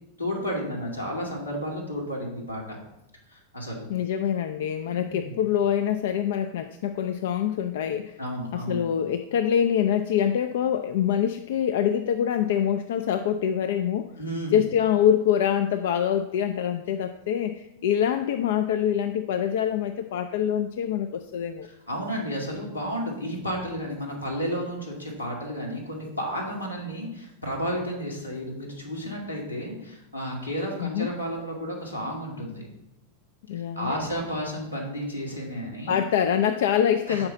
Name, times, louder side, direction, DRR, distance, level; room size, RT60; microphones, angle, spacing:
voice 1, 0.2-2.8 3.3-3.9 4.9-5.4 8.2-8.8 14.2-14.6 21.6-32.7 33.5-36.0 37.1-37.2, equal, 85° left, -3 dB, 2.0 m, -32 dB
voice 2, 3.9-8.2 8.5-14.1 14.5-21.7 30.8-31.1 33.5-34.1 35.9-37.3, left 9 dB, 55° left, 9 dB, 0.3 m, -25 dB
5.8 x 4.7 x 6.5 m, 0.84 s
figure-of-eight pair, 90°, 0 cm